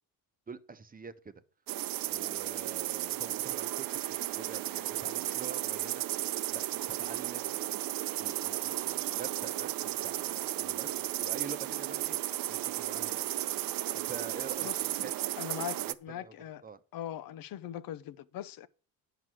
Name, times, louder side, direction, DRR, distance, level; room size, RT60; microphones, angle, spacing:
voice 1, 0.5-1.4 2.0-6.0 6.5-7.8 8.2-12.2 12.5-13.3 13.9-15.1 15.8-16.3 16.6-16.8, right 5 dB, 25° right, 0.9 m, -46 dB
sound 1, 1.7-15.9, right 14 dB, 65° right, 0.7 m, -34 dB
voice 2, 15.4-16.6 16.9-18.7, left 11 dB, 70° left, 0.8 m, -40 dB
9.4 x 6.0 x 6.1 m
cardioid pair, 90°, 37 cm